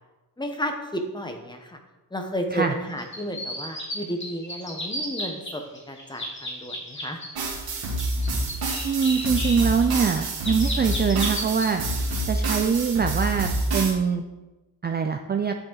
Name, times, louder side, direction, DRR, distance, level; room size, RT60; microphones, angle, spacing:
voice 1, 0.4-1.8 2.1-7.2, equal, 10° left, 4 dB, 1.0 m, -32 dB
sound 1, 3.0-5.5 5.7-7.3 7.7-11.6 12.1-12.4, equal, 30° left, 2.8 m, -33 dB
sound 2, 7.4-13.9, right 1 dB, 75° right, 1.9 m, -27 dB
voice 2, 8.8-11.8 12.3-14.2 14.8-15.6, right 6 dB, 30° right, 5 dB, 0.4 m, -23 dB
9.1 x 6.9 x 3.9 m, 1.1 s
wide cardioid pair, 155°, 37 cm